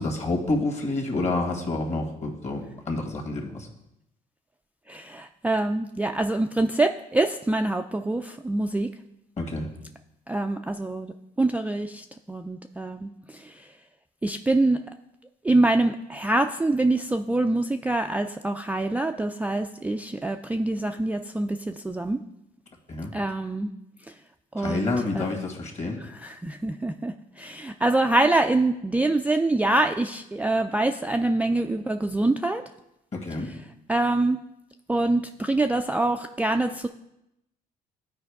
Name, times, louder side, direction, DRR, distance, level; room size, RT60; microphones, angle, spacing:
voice 1, 0.0-3.7 9.4-9.7 22.9-23.1 24.6-26.0 33.1-33.5, left 2 dB, 40° left, 1 dB, 1.8 m, -28 dB
voice 2, 4.9-8.9 10.3-13.5 14.2-14.8 15.4-22.2 23.1-23.7 24.5-25.4 26.0-32.6 33.5-33.6 33.9-34.4 34.9-36.9, right 2 dB, 10° right, 5 dB, 0.3 m, -25 dB
11.0 x 4.6 x 3.5 m, 0.85 s
supercardioid pair, 75°, 18 cm